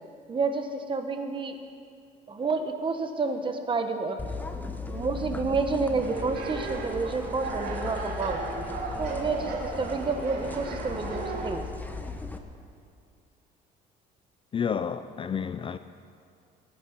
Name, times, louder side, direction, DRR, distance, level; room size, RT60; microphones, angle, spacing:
voice 1, 0.3-1.6 2.3-4.2 4.6-8.4 9.0-11.6, right 4 dB, 30° right, 1.4 m, -29 dB
sound 1, 4.2-12.4, left 3 dB, 10° left, 1.1 m, -38 dB
sound 2, 6.0-11.5, right 3 dB, 70° right, 3.1 m, -35 dB
voice 2, 14.5-15.8, left 7 dB, 30° left, 0.5 m, -30 dB
20.0 x 10.0 x 5.9 m
cardioid pair, 110°, 17 cm